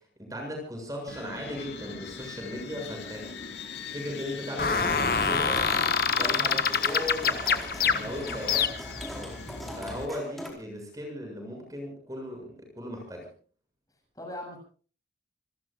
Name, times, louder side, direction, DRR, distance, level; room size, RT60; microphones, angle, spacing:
voice 1, 0.2-3.5 3.9-5.6 6.1-8.7 9.1-9.4 9.8-13.3, left 1 dB, 20° right, 2 dB, 7.2 m, -37 dB
sound 1, 1.1-10.1, left 4 dB, 90° left, 2.1 m, -41 dB
sound 2, 4.6-9.1, left 5 dB, 55° left, 1.4 m, -26 dB
sound 3, 5.5-10.5, equal, ahead, 4.3 m, -43 dB
voice 2, 7.9-8.6 14.1-14.6, left 1 dB, 20° left, 1 dB, 7.7 m, -41 dB
27.5 x 20.5 x 2.5 m, 0.41 s
head